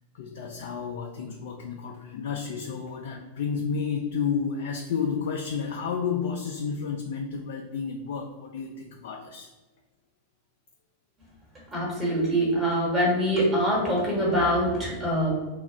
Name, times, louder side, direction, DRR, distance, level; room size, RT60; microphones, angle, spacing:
voice 1, 0.1-9.5, left 6 dB, 55° left, 2 dB, 0.3 m, -31 dB
voice 2, 11.7-15.3, equal, 20° right, -3 dB, 1.3 m, -24 dB
2.4 x 2.3 x 4.0 m, 1.2 s
figure-of-eight pair, 90°, 0 cm